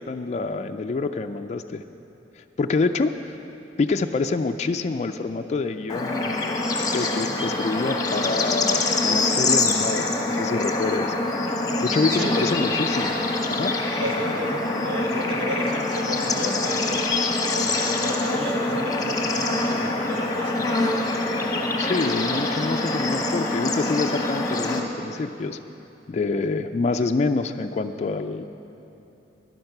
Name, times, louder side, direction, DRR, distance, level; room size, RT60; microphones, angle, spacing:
voice 1, 0.0-1.8 2.4-3.4 3.8-11.1 11.8-13.2 13.5-13.7 21.8-25.6 26.1-28.4, left 3 dB, 40° left, 6 dB, 0.3 m, -26 dB
Bird / Insect / Frog, 5.9-24.8, left 2 dB, 20° left, 0.9 m, -25 dB
voice 2, 12.1-12.5 14.0-17.0 17.5-20.6, equal, 65° right, 0 dB, 1.6 m, -32 dB
10.5 x 10.5 x 6.6 m, 2.9 s
head